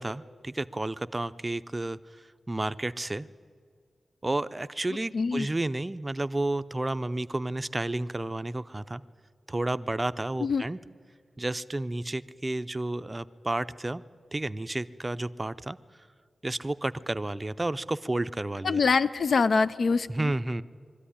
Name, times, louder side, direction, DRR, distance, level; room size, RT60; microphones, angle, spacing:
voice 1, 0.0-2.0 2.5-3.3 4.2-9.0 9.5-10.8 11.4-14.0 14.3-15.8 16.4-18.8 20.1-20.6, right 2 dB, 20° right, 13 dB, 0.5 m, -31 dB
voice 2, 5.1-5.5 10.4-10.6 18.6-20.3, left 4 dB, 65° left, 12 dB, 0.5 m, -24 dB
22.5 x 13.5 x 10.0 m, 2.1 s
wide cardioid pair, 125°, 0 cm